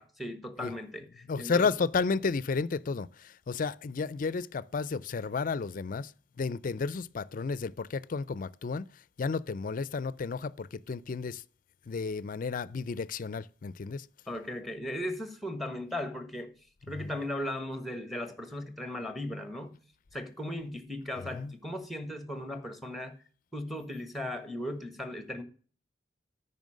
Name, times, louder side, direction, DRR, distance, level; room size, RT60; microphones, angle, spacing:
voice 1, 0.0-1.7 14.3-16.5 16.9-19.8 20.1-23.2 23.5-25.4, left 1 dB, ahead, 1.3 m, -37 dB
voice 2, 1.3-6.1 6.4-8.8 9.2-11.4 11.9-14.0 17.0-17.1 21.3-21.5, left 4 dB, 50° left, 0.4 m, -32 dB
9.2 x 5.6 x 6.3 m
head